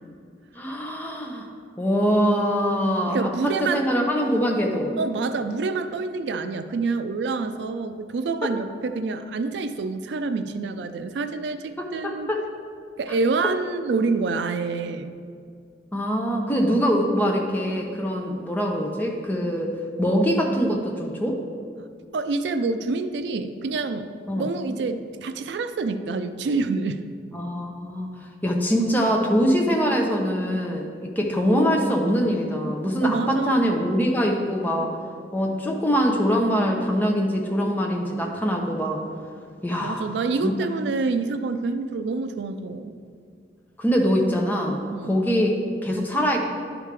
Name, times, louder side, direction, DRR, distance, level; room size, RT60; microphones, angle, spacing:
voice 1, 0.6-1.5 1.8-4.9 11.8-12.4 15.9-19.7 20.0-21.4 24.3-24.5 27.3-34.9 35.3-39.0 39.6-40.1 40.4-40.5 43.8-46.4, equal, 10° left, 0 dB, 0.7 m, -23 dB
voice 2, 3.1-3.8 5.0-12.3 13.0-15.1 22.1-24.1 24.4-27.0 33.0-33.9 39.8-42.9 44.9-45.2, right 3 dB, 75° right, 10 dB, 0.4 m, -27 dB
10.5 x 5.0 x 3.3 m, 2.2 s
head